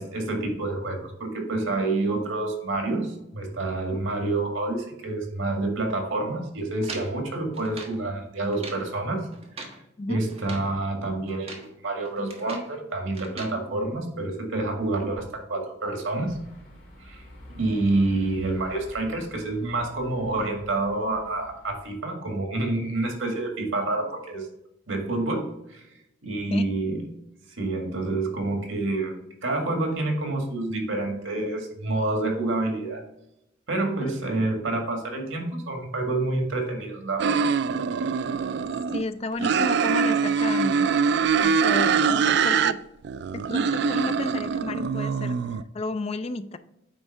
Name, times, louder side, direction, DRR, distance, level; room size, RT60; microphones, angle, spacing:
voice 1, 0.0-9.3 10.1-16.4 17.0-17.2 17.5-24.5 24.9-25.9 26.2-27.1 27.5-29.1 29.4-33.0 33.7-37.5 38.2-38.3, right 2 dB, 85° right, 3 dB, 1.9 m, -28 dB
sound 1, 6.8-8.0 8.4-8.9 9.3-9.8 10.3-10.7 11.3-11.7 12.0-12.7 13.1-13.6, right 3 dB, 30° right, 1.3 m, -41 dB
sound 2, 16.2-21.9, left 1 dB, 50° left, 2.2 m, -48 dB
sound 3, 37.2-39.0 39.4-42.7 43.0-45.6, right 6 dB, 55° right, 0.3 m, -23 dB
voice 2, 38.9-40.9 41.4-42.8 43.3-46.6, left 2 dB, 30° left, 12 dB, 0.4 m, -32 dB
8.9 x 3.6 x 5.4 m, 0.84 s
head